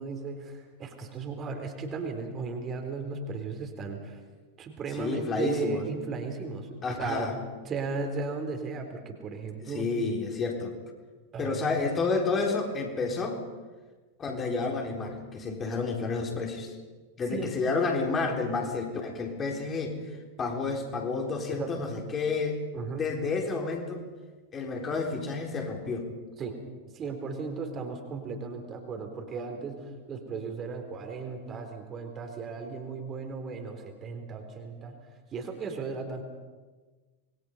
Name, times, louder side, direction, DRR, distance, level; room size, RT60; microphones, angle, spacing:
voice 1, 0.0-4.2 4.6-7.3 7.6-9.9 11.3-11.6 17.3-17.6 21.5-21.7 22.7-23.1 26.4-26.6 26.9-35.0 35.3-36.2, right 4 dB, 25° right, 4 dB, 3.7 m, -36 dB
voice 2, 4.9-5.8 6.8-7.3 9.6-10.7 11.4-13.4 14.2-16.8 17.2-20.0 20.4-22.6 22.9-24.0 24.5-26.1, left 4 dB, 25° left, 1 dB, 4.1 m, -30 dB
26.5 x 22.0 x 5.6 m, 1.3 s
figure-of-eight pair, 90°, 0 cm